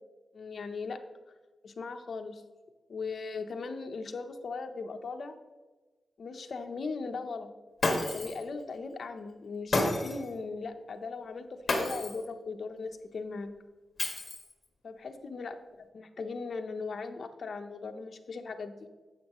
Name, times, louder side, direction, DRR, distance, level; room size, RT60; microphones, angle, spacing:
voice 1, 0.3-1.0 1.6-2.4 2.9-5.4 6.2-7.5 8.1-13.5 14.8-15.6 15.9-18.9, left 4 dB, 50° left, 6 dB, 0.8 m, -38 dB
Shatter, 7.8-8.4 9.7-10.3 11.7-12.3 14.0-14.6, left 2 dB, 30° left, 1.7 m, -30 dB
12.0 x 8.2 x 3.0 m, 1.2 s
wide cardioid pair, 155°, 0 cm